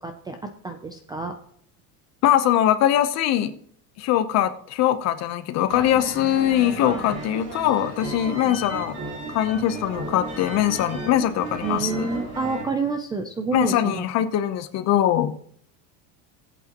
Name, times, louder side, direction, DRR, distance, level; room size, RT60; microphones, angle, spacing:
voice 1, 0.0-1.4 8.4-8.5 11.6-14.0, right 4 dB, 10° right, 6 dB, 0.4 m, -28 dB
voice 2, 2.2-3.5 4.0-9.0 9.3-12.1 13.5-15.3, left 11 dB, 40° left, 10 dB, 0.8 m, -22 dB
sound 1, 5.7-12.6, right 2 dB, 45° right, 4.0 m, -34 dB
18.5 x 8.3 x 2.9 m, 0.65 s
cardioid pair, 160°, 43 cm